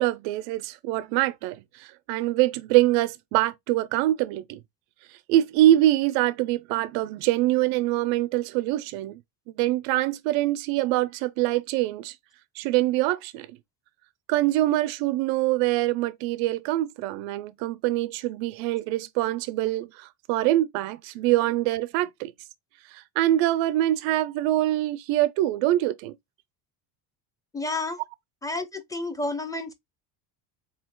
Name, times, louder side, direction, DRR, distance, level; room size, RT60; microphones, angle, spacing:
voice 1, 0.0-4.6 5.3-9.2 9.6-12.1 12.6-13.5 14.3-22.3 22.9-26.2, right 15 dB, 85° right, 0.6 m, -24 dB
voice 2, 27.5-28.0 28.4-29.7, left 2 dB, 10° left, 0.8 m, -30 dB
3.9 x 2.8 x 3.6 m
cardioid pair, 115°, 44 cm